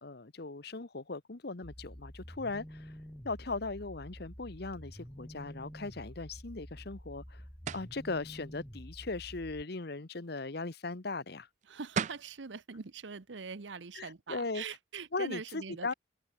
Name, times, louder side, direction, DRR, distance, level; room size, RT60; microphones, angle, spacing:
voice 1, 0.0-2.9 3.2-7.4 7.7-11.5 13.9-14.6 15.1-15.9, left 3 dB, 60° left, 1.2 m, -38 dB
sound 1, 1.6-9.6, equal, 10° left, 2.6 m, -49 dB
sound 2, 7.7-8.0 11.6-11.7 12.0-12.3, right 6 dB, 40° right, 0.3 m, -34 dB
voice 2, 11.7-15.9, right 5 dB, 85° right, 0.9 m, -43 dB
head